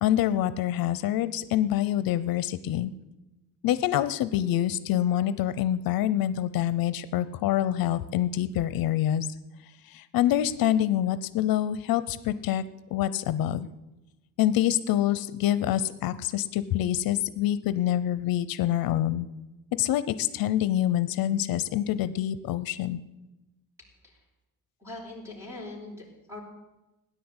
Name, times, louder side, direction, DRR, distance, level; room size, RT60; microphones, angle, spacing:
voice 1, 0.0-2.9 3.6-9.3 9.9-12.6 12.9-13.7 14.4-19.3 19.7-23.0, left 12 dB, 75° left, 14 dB, 0.7 m, -26 dB
voice 2, 24.8-26.4, left 2 dB, 10° right, 0 dB, 3.9 m, -41 dB
16.5 x 10.0 x 8.0 m, 1.0 s
cardioid pair, 175°, 35 cm